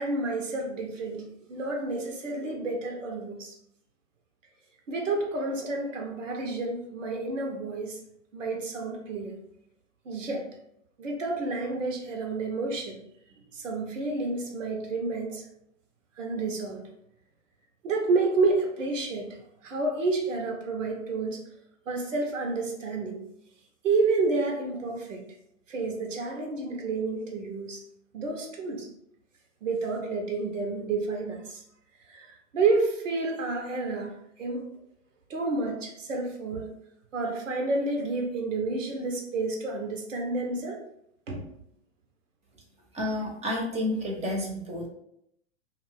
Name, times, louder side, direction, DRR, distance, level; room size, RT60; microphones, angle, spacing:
voice 1, 0.0-3.5 4.9-8.0 8.3-9.3 10.1-10.4 11.0-13.0 13.5-15.4 16.2-16.8 17.8-19.4 19.6-21.4 21.9-23.2 23.8-25.2 25.7-27.8 28.1-28.9 29.6-31.6 32.1-34.1 34.4-34.6 35.3-36.7 37.1-40.8 41.3-41.4, right 3 dB, 85° right, 2 dB, 0.8 m, -30 dB
voice 2, 42.9-44.9, left 1 dB, 20° right, 0 dB, 0.7 m, -30 dB
2.5 x 2.4 x 3.5 m, 0.75 s
hypercardioid pair, 110°, 37 cm